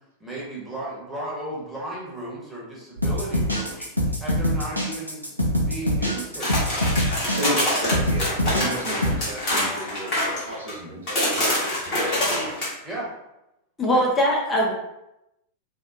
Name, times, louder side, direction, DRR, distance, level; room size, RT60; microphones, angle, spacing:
voice 1, 0.2-3.8 4.2-6.9 12.8-13.1 13.9-14.1, right 1 dB, 10° right, -6 dB, 1.0 m, -35 dB
sound 1, 3.0-9.2, equal, 90° left, 0.4 m, -24 dB
sound 2, 6.4-10.7 11.1-12.7, left 1 dB, 40° left, 1.1 m, -25 dB
voice 2, 7.3-12.2, right 1 dB, 75° right, -4 dB, 0.7 m, -33 dB
voice 3, 13.8-14.7, equal, 15° left, -2 dB, 0.5 m, -21 dB
2.7 x 2.1 x 2.4 m, 0.88 s
figure-of-eight pair, 90°, 0 cm